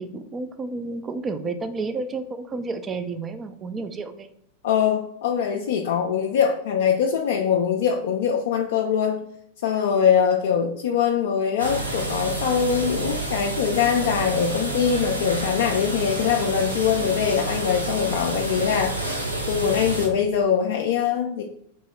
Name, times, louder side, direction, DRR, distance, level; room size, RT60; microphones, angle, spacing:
voice 1, 0.0-4.3, right 3 dB, 20° right, 9 dB, 0.3 m, -31 dB
voice 2, 4.6-9.3 9.6-19.0 19.5-21.4, left 7 dB, 55° left, 2 dB, 0.3 m, -22 dB
sound 1, 11.6-20.1, right 2 dB, 85° right, 0.6 m, -29 dB
3.0 x 2.7 x 4.4 m, 0.70 s
figure-of-eight pair, 90°, 0 cm